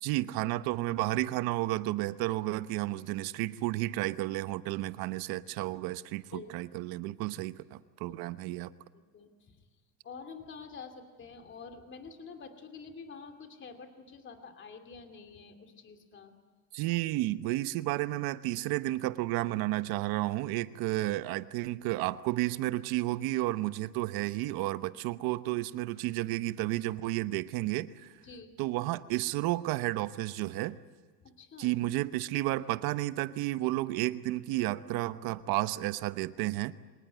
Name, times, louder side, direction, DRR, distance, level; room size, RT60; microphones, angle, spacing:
voice 1, 0.0-8.7 16.7-28.1 28.6-30.8 31.6-36.8, right 17 dB, 50° right, 13 dB, 1.0 m, -32 dB
voice 2, 6.3-6.7 8.1-8.2 8.9-9.7 10.0-16.3 20.9-21.0 24.9-25.1 28.2-28.5 31.2-31.8, left 5 dB, 25° left, 6 dB, 2.7 m, -48 dB
25.5 x 19.0 x 9.4 m, 1.5 s
supercardioid pair, 140°, 47 cm